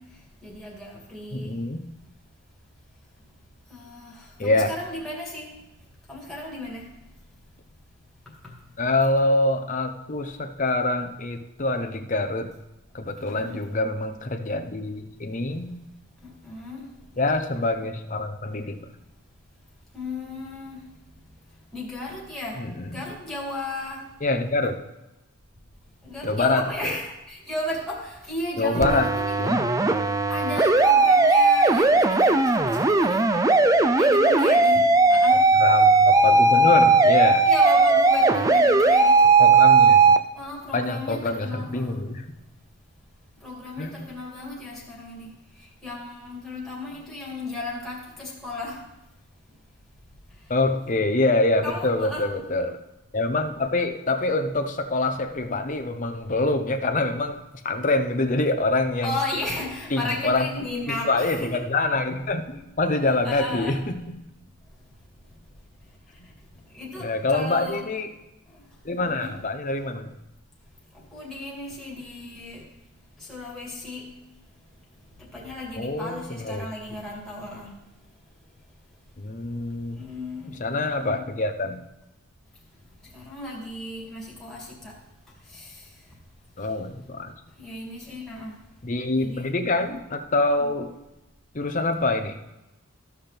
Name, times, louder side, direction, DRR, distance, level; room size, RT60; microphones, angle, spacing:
voice 1, 0.4-1.5 3.7-5.5 6.1-6.9 8.4-8.5 13.2-13.7 16.2-16.9 19.9-20.8 21.7-22.6 22.9-24.1 26.0-29.7 30.3-33.3 33.9-35.4 37.5-39.4 40.2-42.0 43.4-45.3 45.6-48.8 51.6-52.3 59.0-61.6 63.2-63.8 66.7-67.8 68.5-68.6 69.1-69.4 71.1-72.7 73.2-74.1 75.2-77.7 80.0-81.3 83.0-85.0 85.5-85.9 87.6-88.6 89.1-89.5, left 1 dB, ahead, -5 dB, 2.6 m, -35 dB
voice 2, 1.3-1.9 4.4-4.8 8.8-12.5 12.9-15.8 17.2-18.9 22.6-23.0 24.2-24.8 26.2-27.0 28.6-29.1 29.4-29.6 35.6-37.5 39.4-40.2 40.7-42.3 43.8-44.0 50.5-52.8 53.1-57.4 57.6-59.1 59.9-60.5 60.9-64.2 67.0-68.1 68.8-70.1 75.7-76.7 79.2-80.0 80.5-81.8 86.6-87.3 88.8-90.9 91.5-92.4, left 2 dB, 35° left, 6 dB, 0.8 m, -25 dB
sound 1, 28.8-40.2, right 3 dB, 15° right, 0.4 m, -17 dB
14.5 x 5.8 x 3.4 m, 0.97 s
head